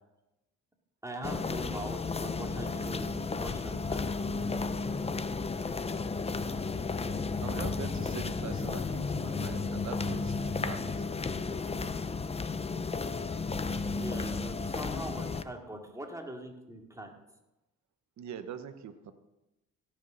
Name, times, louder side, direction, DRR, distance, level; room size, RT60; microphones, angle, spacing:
voice 1, 1.0-4.1 13.8-17.1, right 1 dB, 10° right, 1 dB, 2.4 m, -42 dB
sound 1, 1.2-15.4, left 4 dB, 20° left, 0.6 m, -33 dB
voice 2, 7.4-11.0 18.2-19.1, right 8 dB, 65° right, 9 dB, 1.1 m, -42 dB
16.5 x 6.5 x 6.4 m, 0.97 s
cardioid pair, 90°, 30 cm